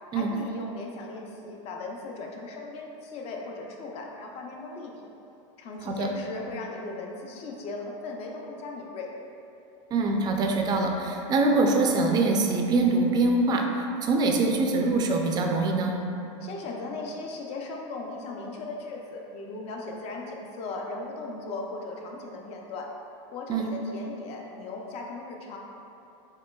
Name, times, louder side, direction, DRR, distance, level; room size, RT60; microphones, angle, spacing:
voice 1, 0.1-4.9 5.6-9.1 16.4-22.9 23.3-25.6, left 3 dB, 40° left, 0 dB, 0.6 m, -38 dB
voice 2, 9.9-15.9 23.5-23.7, right 3 dB, 25° right, 2 dB, 0.4 m, -24 dB
6.5 x 3.0 x 2.3 m, 2.8 s
supercardioid pair, 140°, 16 cm